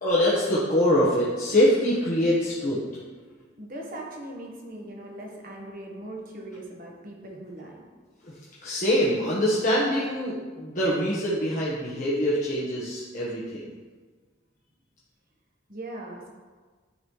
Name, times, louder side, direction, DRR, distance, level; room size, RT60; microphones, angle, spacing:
voice 1, 0.0-2.8 8.2-8.3 8.6-13.7, equal, 45° left, -8 dB, 1.2 m, -24 dB
voice 2, 3.6-7.8 15.7-16.3, right 1 dB, 50° right, -1 dB, 1.3 m, -40 dB
11.0 x 4.1 x 3.1 m, 1.4 s
head